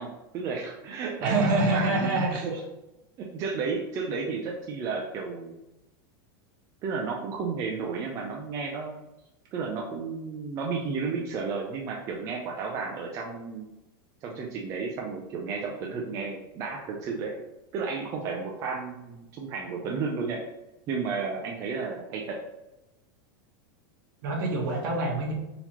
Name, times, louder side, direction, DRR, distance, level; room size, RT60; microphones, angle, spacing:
voice 1, 0.0-2.6 3.2-5.5 6.8-8.9 9.5-13.7 14.2-17.3 17.7-20.4 20.9-22.4, right 5 dB, 25° right, -1 dB, 0.4 m, -32 dB
voice 2, 1.2-2.4 24.2-25.3, right 2 dB, 60° right, -1 dB, 1.2 m, -25 dB
3.9 x 2.9 x 2.9 m, 0.95 s
supercardioid pair, 160°, 12 cm